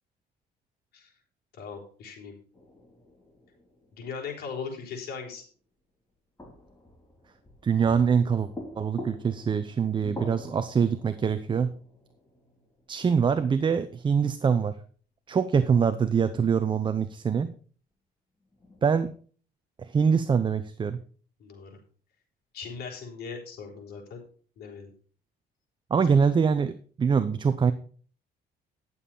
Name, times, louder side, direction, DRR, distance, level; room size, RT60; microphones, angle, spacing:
voice 1, 1.6-2.3 3.9-5.4 21.4-21.8 22.5-24.2 24.6-24.9, left 5 dB, 70° left, 1 dB, 4.2 m, -39 dB
sound 1, 2.5-5.1 6.4-14.2 18.4-19.1, left 1 dB, 15° left, 3.4 m, -46 dB
voice 2, 7.6-8.5 8.8-11.7 12.9-14.8 15.3-17.5 18.8-19.1 19.8-21.0 25.9-27.7, right 6 dB, 30° right, 11 dB, 0.7 m, -24 dB
11.0 x 7.2 x 5.6 m, 0.43 s
cardioid pair, 110°, 17 cm